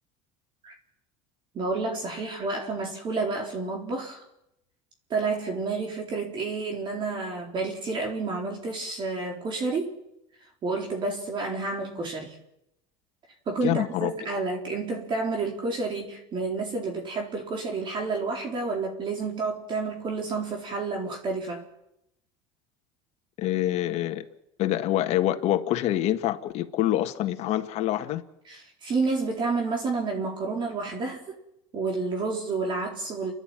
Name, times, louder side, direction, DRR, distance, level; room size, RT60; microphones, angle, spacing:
voice 1, 1.5-4.2 5.1-10.0 10.6-12.4 13.5-21.7 28.5-31.2 31.7-33.3, right 3 dB, 35° right, 4.0 m, -30 dB
voice 2, 13.6-14.1 23.4-24.3 24.6-28.2, left 13 dB, 50° left, 1.7 m, -26 dB
29.0 x 11.0 x 9.0 m
supercardioid pair, 120°, 14 cm